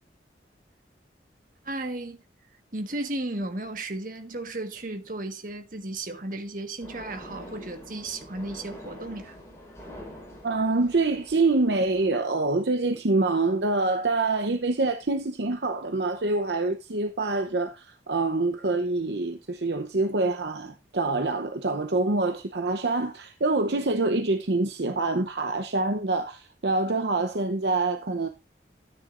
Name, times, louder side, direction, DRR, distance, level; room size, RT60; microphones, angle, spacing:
voice 1, 1.6-2.2 2.7-9.4, right 2 dB, 45° right, 1.5 m, -34 dB
sound 1, 6.8-12.1, equal, 15° left, 4.7 m, -45 dB
voice 2, 10.4-28.3, right 3 dB, 65° right, 0.8 m, -26 dB
13.0 x 9.5 x 2.6 m
head